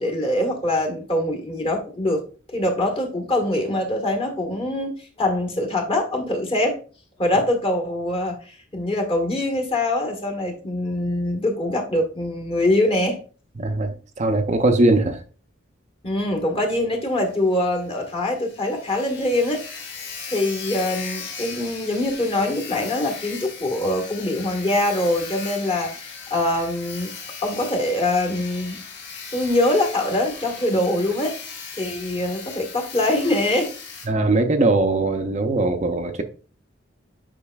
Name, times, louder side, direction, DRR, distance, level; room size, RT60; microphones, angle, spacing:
voice 1, 0.0-2.2 2.5-6.8 7.2-13.2 16.0-19.6 20.3-27.1 27.4-28.8 29.3-31.3 31.8-33.7, left 1 dB, 30° left, 1.5 m, -23 dB
voice 2, 13.6-15.2 34.1-36.2, right 2 dB, 40° right, 0.6 m, -20 dB
Sawing, 17.2-17.3 17.6-17.7 18.1-18.2 18.3-34.1, left 5 dB, 60° left, 1.6 m, -37 dB
8.5 x 5.4 x 2.3 m
head